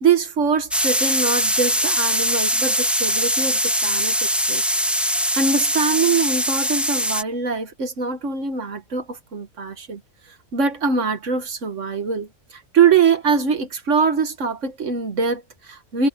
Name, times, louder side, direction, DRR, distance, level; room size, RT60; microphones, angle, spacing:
voice 1, 0.0-4.6 5.4-10.0 10.5-16.1, right 5 dB, 60° right, 1.9 m, -23 dB
sound 1, 0.7-7.2, equal, ahead, 1.8 m, -21 dB
omnidirectional pair, 1.4 m